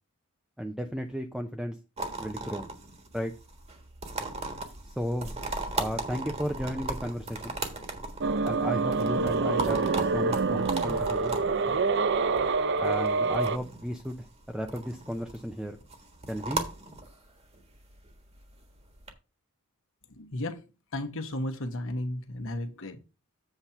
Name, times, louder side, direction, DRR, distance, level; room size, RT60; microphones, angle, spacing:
voice 1, 0.6-1.8 2.2-2.7 3.1-3.3 4.9-5.3 5.8-7.6 8.4-11.4 12.8-15.8 16.3-16.7, equal, ahead, 0.6 m, -34 dB
sound 1, 2.0-19.1, right 3 dB, 30° right, 1.4 m, -38 dB
sound 2, 8.2-13.6, right 4 dB, 50° right, 0.6 m, -26 dB
voice 2, 20.1-20.6 20.9-23.0, left 1 dB, 60° left, 1.2 m, -34 dB
8.0 x 4.2 x 5.7 m
head